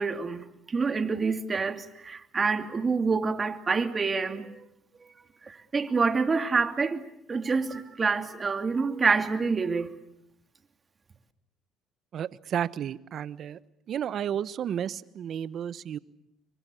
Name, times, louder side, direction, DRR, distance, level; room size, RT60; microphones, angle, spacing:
voice 1, 0.0-4.6 5.4-9.9, right 4 dB, 30° right, 2.7 m, -27 dB
voice 2, 12.1-13.6 13.9-16.0, right 9 dB, 55° right, 1.1 m, -32 dB
28.5 x 23.5 x 8.5 m
supercardioid pair, 75°, 0 cm